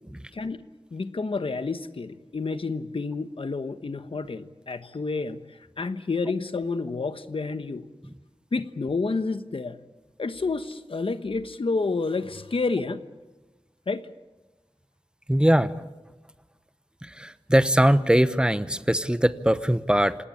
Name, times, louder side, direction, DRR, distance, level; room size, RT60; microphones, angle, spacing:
voice 1, 0.3-0.6 0.9-5.4 5.8-7.9 8.5-9.8 10.2-13.0 13.9-14.1, left 3 dB, 65° left, 11 dB, 1.2 m, -29 dB
voice 2, 15.3-15.7 17.0-20.2, equal, 10° right, 13 dB, 0.9 m, -21 dB
27.0 x 18.5 x 8.6 m, 1.2 s
wide cardioid pair, 80°, 10 cm